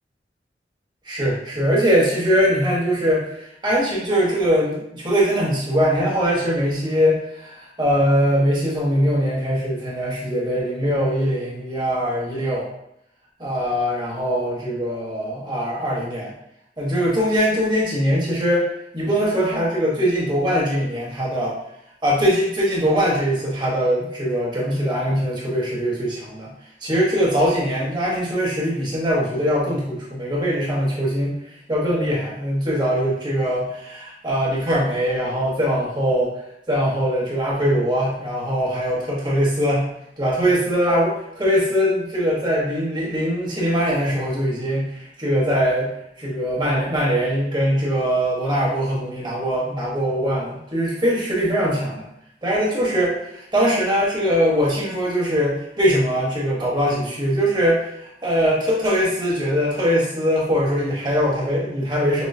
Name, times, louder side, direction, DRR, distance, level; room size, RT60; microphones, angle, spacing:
voice 1, 1.0-12.7 13.4-16.3 16.8-18.7 18.9-21.6 22.0-26.5 26.8-31.3 31.7-36.3 36.7-39.8 40.2-41.1 41.4-45.9 46.2-52.1 52.4-62.3, equal, 25° right, -5 dB, 1.2 m, -21 dB
6.0 x 2.0 x 2.7 m, 0.77 s
head